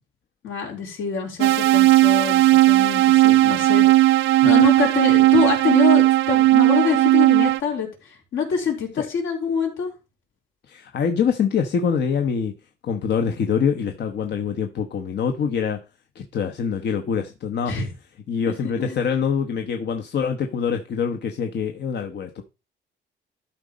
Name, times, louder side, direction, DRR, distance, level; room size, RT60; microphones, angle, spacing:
voice 1, 0.4-7.9 8.3-9.9 17.7-17.9 18.8-19.0, left 6 dB, 80° left, 3.8 m, -25 dB
sound 1, 1.4-7.6, right 17 dB, 80° right, 0.5 m, -16 dB
voice 2, 10.7-12.5 12.8-15.8 16.1-17.7 18.3-22.4, left 6 dB, 60° left, 1.1 m, -24 dB
12.5 x 4.2 x 5.2 m
cardioid pair, 90°, 20 cm